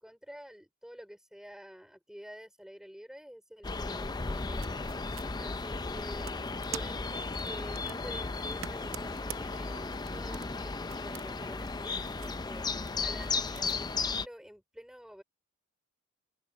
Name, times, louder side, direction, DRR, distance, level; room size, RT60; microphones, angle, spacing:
voice 1, 0.0-4.8 5.1-15.2, equal, 5° right, 3.0 m, -49 dB
sound 1, 3.6-14.3, left 3 dB, 20° left, 0.4 m, -35 dB
sound 2, 4.2-13.8, right 8 dB, 65° right, 0.9 m, -49 dB
Laughter, 8.2-11.2, left 4 dB, 65° left, 6.5 m, -58 dB
open air
head